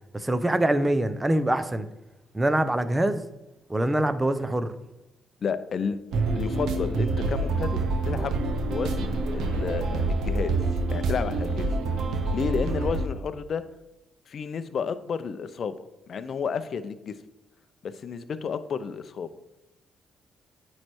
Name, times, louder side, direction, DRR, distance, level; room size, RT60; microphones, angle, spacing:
voice 1, 0.1-1.9 2.3-3.2 3.7-4.7, right 1 dB, 15° right, 11 dB, 0.6 m, -24 dB
voice 2, 5.4-6.0 6.3-7.8 8.0-8.3 8.7-10.6 10.9-11.7 12.3-13.6 14.3-15.8 16.1-17.2 17.8-19.3, left 6 dB, 55° left, 12 dB, 0.5 m, -31 dB
sound 1, 6.1-13.1, right 2 dB, 80° right, 0.8 m, -27 dB
9.5 x 3.2 x 4.5 m, 0.97 s
cardioid pair, 90°, 0 cm